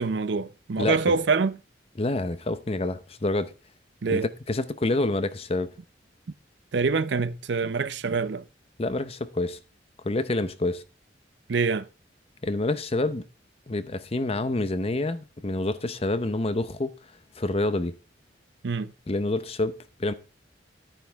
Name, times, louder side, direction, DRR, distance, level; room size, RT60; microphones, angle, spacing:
voice 1, 0.0-1.6 4.0-4.3 6.7-8.4 11.5-11.9 18.6-18.9, right 4 dB, 65° right, 0.5 m, -25 dB
voice 2, 2.0-3.5 4.1-4.2 4.5-5.7 8.8-9.6 10.0-10.8 12.4-13.2 13.7-16.9 17.4-18.0 19.1-20.1, left 2 dB, 35° left, 0.7 m, -27 dB
11.5 x 9.1 x 3.4 m
head